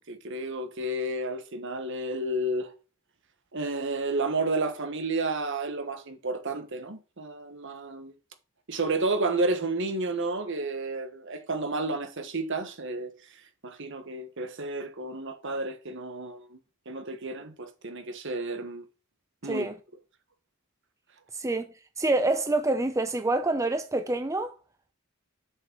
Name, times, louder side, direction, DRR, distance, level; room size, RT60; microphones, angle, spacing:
voice 1, 0.1-2.7 3.5-8.1 8.7-13.1 13.6-16.6 16.8-18.8 19.4-19.7, right 2 dB, 60° right, 1.4 m, -31 dB
voice 2, 19.4-19.7 21.3-24.5, right 2 dB, 15° right, 0.6 m, -27 dB
7.4 x 6.5 x 4.6 m
head